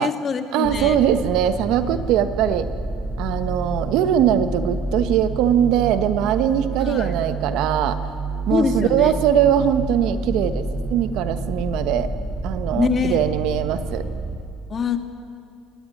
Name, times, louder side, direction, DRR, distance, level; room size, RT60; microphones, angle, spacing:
voice 1, 0.0-1.0 6.9-7.1 8.5-9.1 12.7-13.2 14.7-15.0, left 6 dB, 40° left, 6 dB, 2.1 m, -23 dB
voice 2, 0.5-2.7 3.2-8.0 8.5-12.1 12.4-14.0, right 9 dB, 70° right, 10 dB, 1.3 m, -21 dB
sound 1, 0.6-14.3, right 2 dB, 25° right, 5.3 m, -29 dB
20.5 x 17.0 x 9.7 m, 2.4 s
supercardioid pair, 85°, 0 cm